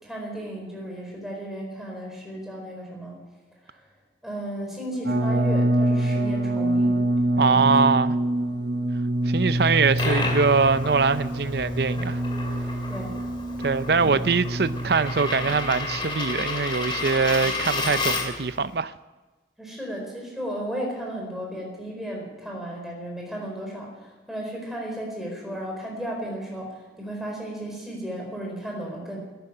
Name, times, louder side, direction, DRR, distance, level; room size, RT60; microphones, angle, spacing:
voice 1, 0.0-3.2 3.6-3.8 4.2-7.0 7.3-7.8 12.9-13.2 13.9-14.3 19.6-29.2, right 1 dB, ahead, 4.5 m, -34 dB
sound 1, 5.0-16.0, right 1 dB, 80° right, 3.7 m, -26 dB
voice 2, 7.4-8.2 9.3-12.2 13.6-18.9, right 4 dB, 60° right, 0.6 m, -22 dB
Coin (dropping), 9.6-18.5, left 3 dB, 30° left, 2.4 m, -31 dB
12.5 x 10.5 x 9.9 m
head